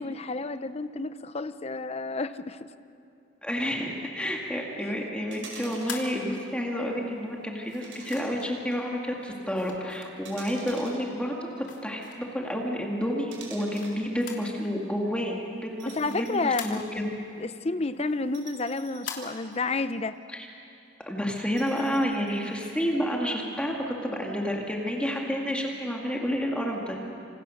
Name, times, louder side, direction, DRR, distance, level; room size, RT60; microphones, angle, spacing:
voice 1, 0.0-2.7 4.8-5.0 15.9-17.0 17.4-20.2, left 3 dB, 35° left, 12 dB, 0.7 m, -31 dB
voice 2, 3.4-11.3 11.8-12.0 12.3-17.1 20.3-20.5 21.1-27.0, equal, 5° left, -1 dB, 2.1 m, -30 dB
sound 1, 5.3-6.2 7.8-8.7 10.2-11.7 13.3-14.0 15.8-16.6 17.0-17.1 18.3-19.9 21.6-22.7, right 4 dB, 75° right, 5.2 m, -47 dB
sound 2, 5.4-6.8 7.6-8.5 9.5-10.6 11.1-12.4 13.0-14.6 14.8-14.9 15.3-17.2 17.6-19.2, left 6 dB, 70° left, 3.1 m, -43 dB
27.0 x 26.5 x 6.5 m, 2.6 s
head